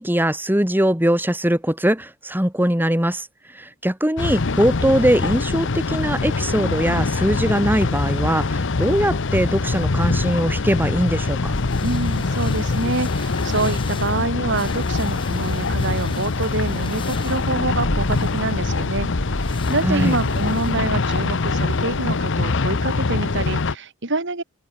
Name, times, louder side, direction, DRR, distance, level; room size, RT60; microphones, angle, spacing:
voice 1, 0.0-11.5 19.8-20.1, right 1 dB, 10° right, 2.3 m, -21 dB
sound 1, 4.2-23.7, left 3 dB, 60° left, 0.8 m, -23 dB
sound 2, 11.4-22.1, left 1 dB, 25° left, 4.0 m, -34 dB
voice 2, 11.8-19.1 19.4-24.4, right 2 dB, 55° right, 2.9 m, -26 dB
open air
head